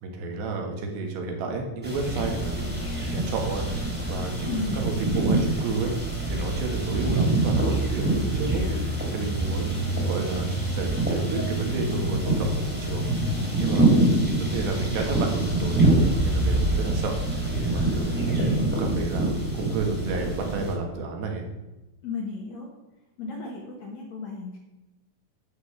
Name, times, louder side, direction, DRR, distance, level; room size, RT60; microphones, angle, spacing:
voice 1, 0.0-5.9 6.3-13.1 13.6-21.5, right 3 dB, 80° right, 2 dB, 3.8 m, -32 dB
sound 1, 1.8-20.7, right 2 dB, 5° right, 1.7 m, -25 dB
voice 2, 4.4-4.8 5.2-5.4 14.0-14.3 14.6-14.7 18.3-18.6 22.0-22.7 23.2-24.6, left 4 dB, 55° left, -1 dB, 2.0 m, -34 dB
11.5 x 5.0 x 7.1 m, 1.0 s
omnidirectional pair, 4.8 m